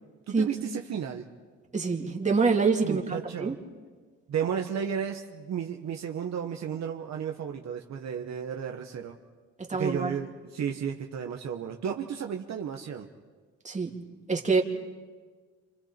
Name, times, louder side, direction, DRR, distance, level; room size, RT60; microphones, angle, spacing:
voice 1, 0.3-1.3 2.8-3.6 4.3-9.2 9.7-13.1, right 8 dB, 65° right, 3 dB, 1.3 m, -33 dB
voice 2, 1.7-3.5 9.6-10.1 13.6-13.9 14.3-14.6, right 4 dB, 25° right, 1 dB, 2.5 m, -26 dB
29.0 x 26.5 x 4.4 m, 1.5 s
cardioid pair, 90°, 30 cm